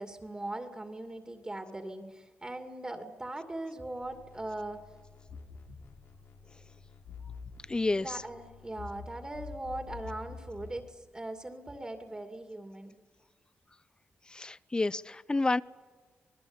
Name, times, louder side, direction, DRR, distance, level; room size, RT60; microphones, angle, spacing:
voice 1, 0.0-4.8 7.9-13.0, right 2 dB, 20° right, 2.4 m, -40 dB
sound 1, 4.0-10.8, left 5 dB, 90° left, 3.3 m, -48 dB
voice 2, 7.7-8.2 14.3-15.6, left 2 dB, 20° left, 0.7 m, -29 dB
26.5 x 20.0 x 8.9 m
wide cardioid pair, 120°, 4 cm